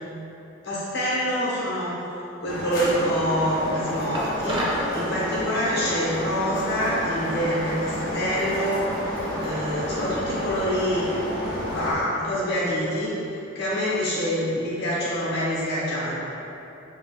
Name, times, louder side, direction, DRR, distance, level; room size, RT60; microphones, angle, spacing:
voice 1, 0.6-2.0 2.4-8.8 9.4-11.1 11.7-13.1 13.5-16.2, equal, 55° left, -8 dB, 1.1 m, -26 dB
sound 1, 2.5-11.9, equal, 85° left, 0.7 m, -30 dB
sound 2, 4.1-4.9, right 1 dB, 25° right, 0.5 m, -28 dB
5.3 x 2.8 x 2.5 m, 3.0 s
head